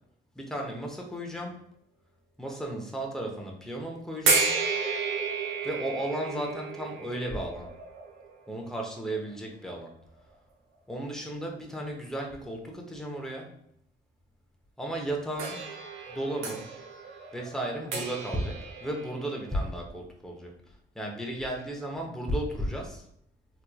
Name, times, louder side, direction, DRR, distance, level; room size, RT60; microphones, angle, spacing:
voice 1, 0.3-1.5 2.4-4.5 5.6-7.7 8.5-9.9 10.9-13.5 14.8-15.6 16.1-16.7 17.3-20.5 20.9-23.0, right 1 dB, ahead, 0 dB, 0.8 m, -34 dB
sound 1, 4.3-9.3 10.2-10.3 15.4-19.7, right 4 dB, 90° right, 0.7 m, -32 dB
3.6 x 3.0 x 2.2 m, 0.71 s
cardioid pair, 90°, 20 cm